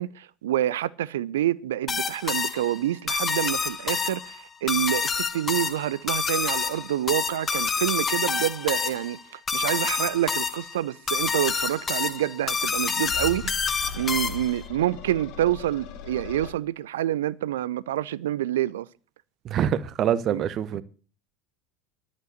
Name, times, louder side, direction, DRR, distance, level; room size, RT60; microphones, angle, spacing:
voice 1, 0.0-9.2 9.5-13.6 13.9-18.9 20.3-20.4, right 12 dB, 65° right, 0.6 m, -27 dB
sound 1, 1.9-14.6, left 5 dB, 25° left, 1.0 m, -28 dB
sound 2, 13.0-16.5, left 6 dB, 55° left, 2.4 m, -39 dB
voice 2, 19.4-20.8, right 10 dB, 40° right, 0.9 m, -25 dB
11.5 x 7.5 x 8.0 m
figure-of-eight pair, 75°, 0 cm